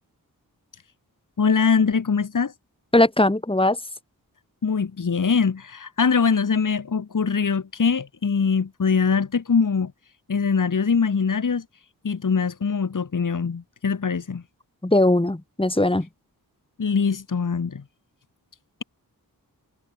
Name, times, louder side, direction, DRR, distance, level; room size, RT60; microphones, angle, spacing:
voice 1, 1.4-2.5 4.6-9.9 10.3-11.6 12.0-14.4 16.8-17.8, left 5 dB, 55° left, 2.3 m, -22 dB
voice 2, 2.9-3.8 14.8-16.1, left 1 dB, 15° left, 4.1 m, -19 dB
wide cardioid pair, 75°, 37 cm